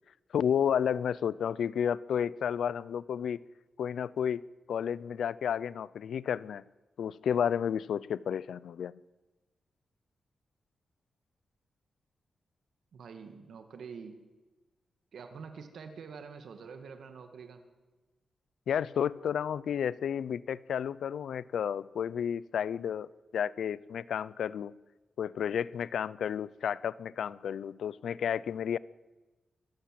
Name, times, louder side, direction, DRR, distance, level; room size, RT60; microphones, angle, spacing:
voice 1, 0.3-3.4 3.8-4.4 4.7-6.6 7.0-9.0 18.7-24.7 25.2-28.8, left 8 dB, 85° left, 0.6 m, -31 dB
voice 2, 12.9-14.1 15.1-17.6, right 5 dB, 70° right, 2.1 m, -46 dB
25.0 x 14.5 x 7.7 m
wide cardioid pair, 150°, 0 cm